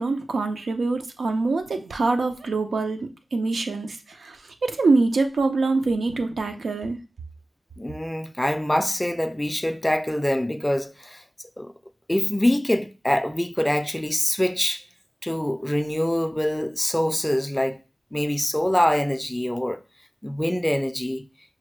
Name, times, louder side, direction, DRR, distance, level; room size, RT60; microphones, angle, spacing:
voice 1, 0.0-3.0 3.3-4.0 4.2-4.4 4.6-7.0, right 3 dB, 90° right, 0.5 m, -24 dB
voice 2, 7.8-11.2 11.6-11.7 12.1-14.8 15.2-17.8 18.1-19.8 20.2-21.3, left 1 dB, 10° left, 0.3 m, -24 dB
5.6 x 2.2 x 3.1 m
wide cardioid pair, 70°, 0 cm